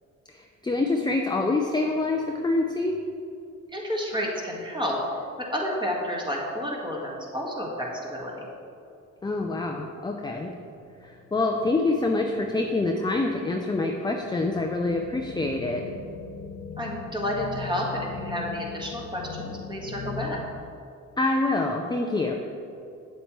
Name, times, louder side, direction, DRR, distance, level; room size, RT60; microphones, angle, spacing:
voice 1, 0.3-3.0 9.2-10.5 11.0-15.8 21.2-22.3, left 2 dB, 15° left, 2 dB, 0.5 m, -26 dB
voice 2, 3.7-5.0 5.4-8.5 16.8-20.4, equal, 15° right, -2 dB, 1.7 m, -30 dB
sound 1, 10.3-20.3, left 5 dB, 90° left, 1.3 m, -40 dB
8.1 x 7.7 x 3.2 m, 2.5 s
cardioid pair, 90°, 30 cm